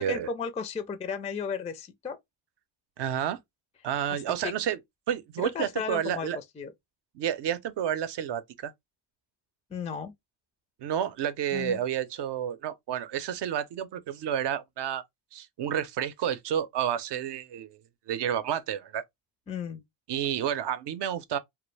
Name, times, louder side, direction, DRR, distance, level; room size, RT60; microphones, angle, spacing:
voice 1, 0.0-2.2 4.1-4.5 5.4-6.7 9.7-10.1 11.5-11.8 19.5-19.8, left 6 dB, 15° left, 0.4 m, -34 dB
voice 2, 3.0-3.4 3.8-4.8 5.1-6.4 7.1-8.7 10.8-15.0 15.3-17.8 18.1-19.0 20.1-21.4, right 9 dB, 60° right, 0.6 m, -30 dB
2.2 x 2.1 x 3.1 m
cardioid pair, 80°, 48 cm